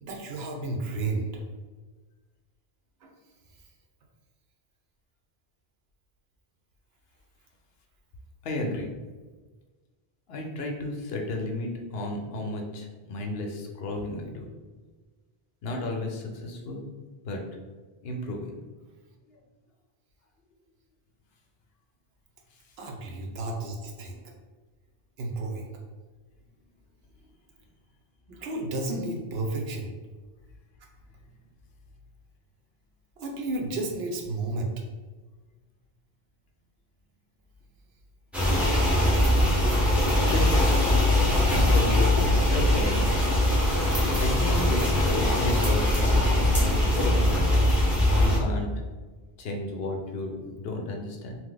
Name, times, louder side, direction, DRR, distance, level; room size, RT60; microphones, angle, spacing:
voice 1, 0.0-1.3 3.0-3.1 22.8-24.2 25.2-25.7 28.3-29.9 33.2-34.7, right 2 dB, 80° right, 1 dB, 0.9 m, -32 dB
voice 2, 8.4-8.9 10.3-14.4 15.6-16.9 17.2-17.4 18.0-18.5 40.3-40.7 41.5-43.3 44.2-47.1 48.2-48.7 49.4-51.4, left 2 dB, 75° left, 1 dB, 0.8 m, -32 dB
sound 1, 38.3-48.4, left 1 dB, ahead, 0.6 m, -22 dB
2.9 x 2.1 x 3.7 m, 1.3 s
omnidirectional pair, 1.0 m